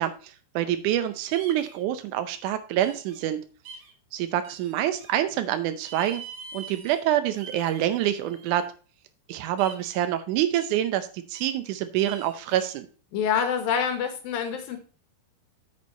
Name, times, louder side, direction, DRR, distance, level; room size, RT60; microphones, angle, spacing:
voice 1, 0.0-3.4 4.1-6.2 6.5-8.7 9.3-12.9, right 12 dB, 85° right, 10 dB, 1.7 m, -26 dB
sound 1, 1.3-1.8 2.8-3.2 3.7-3.9 4.4-5.2 5.8-7.0 7.3-8.7 9.6-10.0 10.5-10.8 11.3-11.6 12.0-12.8, right 5 dB, 60° right, 1.8 m, -44 dB
voice 2, 13.1-14.8, left 7 dB, 70° left, 7 dB, 2.7 m, -26 dB
8.4 x 6.6 x 4.0 m, 0.37 s
omnidirectional pair, 4.6 m